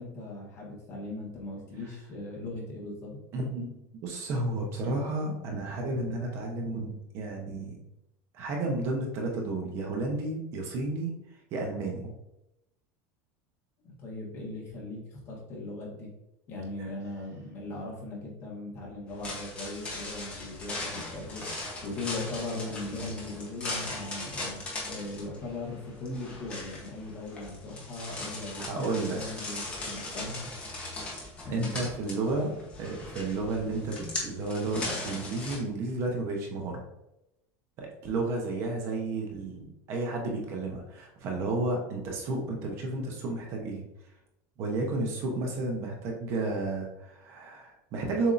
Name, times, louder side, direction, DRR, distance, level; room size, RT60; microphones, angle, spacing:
voice 1, 0.0-3.2 13.8-16.1 16.5-21.4 21.8-30.5 31.4-31.7 32.3-32.4, left 2 dB, 35° left, -2 dB, 1.3 m, -39 dB
voice 2, 3.3-3.7 4.0-7.8 8.3-11.1 11.5-12.1 28.6-29.4 31.5-32.5 32.8-36.8 37.8-43.8 44.6-48.3, right 2 dB, 40° right, 1 dB, 0.8 m, -32 dB
sound 1, 19.1-35.6, left 2 dB, 15° left, 0.9 m, -39 dB
6.9 x 2.7 x 2.5 m, 0.87 s
cardioid pair, 175°, 7 cm